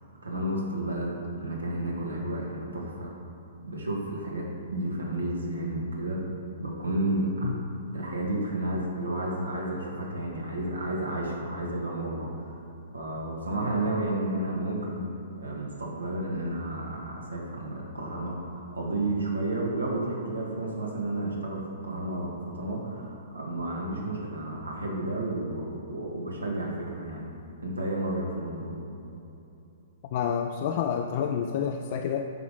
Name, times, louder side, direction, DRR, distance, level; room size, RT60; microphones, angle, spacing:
voice 1, 0.2-3.1 3.6-6.3 6.6-7.5 7.9-12.6 12.9-15.1 15.4-27.3 27.6-28.8, right 1 dB, 75° right, -2 dB, 1.9 m, -31 dB
voice 2, 30.1-32.3, left 8 dB, 45° left, 3 dB, 0.4 m, -29 dB
8.9 x 5.7 x 5.5 m, 2.9 s
figure-of-eight pair, 110°, 0 cm